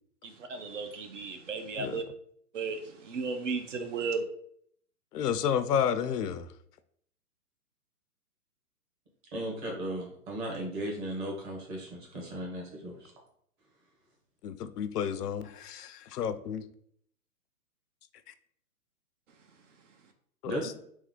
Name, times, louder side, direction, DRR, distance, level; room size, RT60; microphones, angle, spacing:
voice 1, 0.2-2.0 2.5-4.2, right 4 dB, 50° right, 6 dB, 0.6 m, -34 dB
voice 2, 5.1-6.4 14.4-16.6 20.4-20.5, left 8 dB, 75° left, 12 dB, 0.6 m, -31 dB
voice 3, 9.3-13.1 20.4-20.7, right 1 dB, 30° right, -1 dB, 1.3 m, -36 dB
3.5 x 3.1 x 3.7 m, 0.66 s
hypercardioid pair, 155°, 47 cm